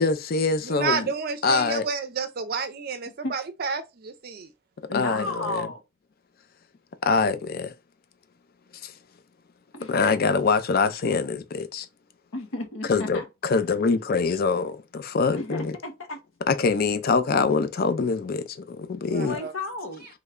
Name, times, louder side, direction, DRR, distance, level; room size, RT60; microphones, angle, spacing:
voice 1, 0.0-1.1 1.4-1.8 4.9-5.7 7.0-7.7 8.8-8.9 9.9-11.9 12.9-15.7 16.5-19.4, left 4 dB, 50° left, 0.4 m, -24 dB
voice 2, 0.6-4.5 19.1-19.5, right 5 dB, 50° right, 0.5 m, -30 dB
voice 3, 4.9-5.8 9.7-9.9 12.3-13.3 15.3-16.2 19.0-20.1, left 2 dB, 80° left, 0.8 m, -33 dB
3.1 x 2.2 x 3.6 m
head